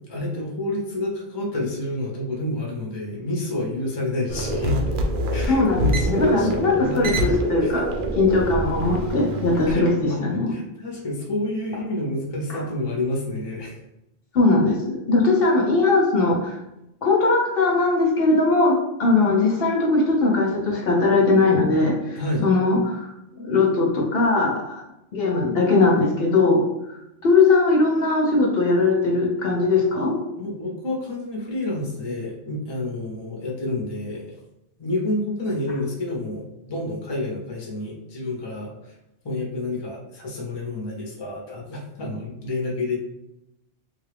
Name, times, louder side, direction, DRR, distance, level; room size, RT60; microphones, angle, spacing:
voice 1, 0.1-4.9 5.3-7.7 9.7-13.8 22.2-22.5 30.4-34.3 34.8-38.9 39.2-43.0, left 1 dB, 25° left, -1 dB, 0.7 m, -29 dB
sound 1, 4.3-9.7, right 1 dB, 55° right, 0.7 m, -26 dB
voice 2, 5.5-7.9 8.2-10.5 12.5-12.6 14.3-16.5 17.0-22.2 22.4-23.1 23.4-24.7 25.1-26.6 27.2-30.2, left 3 dB, 60° left, -1 dB, 0.8 m, -20 dB
3.6 x 2.4 x 3.3 m, 0.88 s
omnidirectional pair, 1.2 m